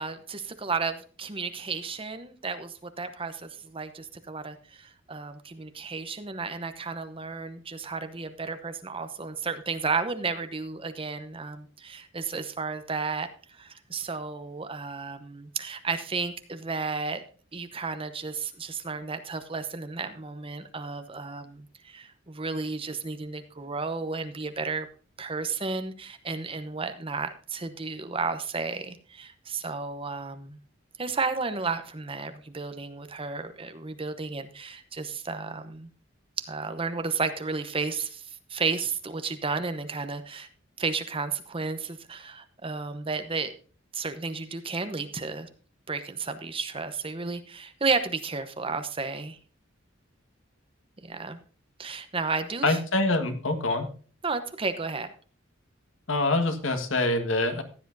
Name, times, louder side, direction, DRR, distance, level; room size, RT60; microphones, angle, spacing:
voice 1, 0.0-13.3 13.6-17.2 17.5-24.9 25.2-30.6 31.0-35.9 36.4-40.5 40.8-43.5 43.9-45.5 45.9-49.4 51.0-51.4 51.8-52.8 54.2-55.1, right 4 dB, 30° right, 9 dB, 1.0 m, -33 dB
voice 2, 52.6-53.9 56.1-57.6, left 2 dB, 80° left, 6 dB, 1.7 m, -25 dB
15.5 x 10.0 x 2.7 m, 0.39 s
head